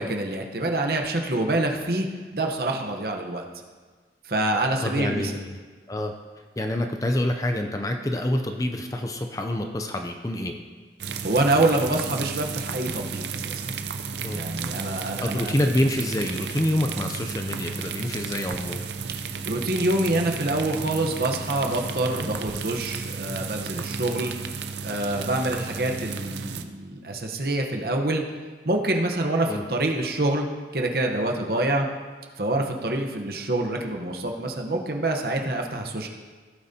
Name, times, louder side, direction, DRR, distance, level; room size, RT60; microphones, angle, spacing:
voice 1, 0.0-3.5 4.2-5.3 11.2-13.6 14.3-15.6 19.4-24.3 24.8-28.2 28.6-30.5 30.7-31.9 32.4-36.1, right 2 dB, 55° right, 2 dB, 1.0 m, -26 dB
voice 2, 4.8-5.6 5.9-6.1 6.6-10.5 14.2-14.4 15.2-18.8 29.5-29.6, left 1 dB, 20° left, 4 dB, 0.5 m, -27 dB
sound 1, 11.0-26.6, right 5 dB, 75° right, 0.6 m, -33 dB
16.0 x 8.8 x 2.8 m, 1.4 s
head